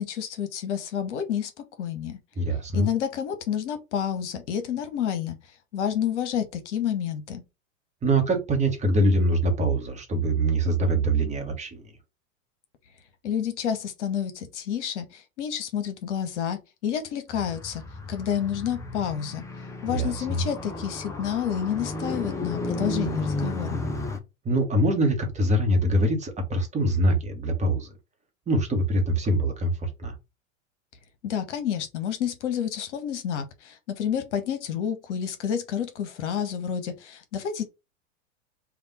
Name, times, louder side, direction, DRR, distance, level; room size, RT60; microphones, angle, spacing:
voice 1, 0.0-1.5 1.8-2.2 2.7-5.4 5.7-7.4 13.2-17.8 18.1-19.4 19.8-23.8 31.2-37.6, left 9 dB, 60° left, 0.9 m, -29 dB
voice 2, 2.4-2.9 8.0-11.9 19.9-20.4 24.4-27.9 28.5-30.1, right 1 dB, 15° right, 1.2 m, -24 dB
Car, 17.3-24.2, left 2 dB, 10° left, 0.5 m, -33 dB
3.4 x 2.4 x 4.1 m
hypercardioid pair, 95°, 39 cm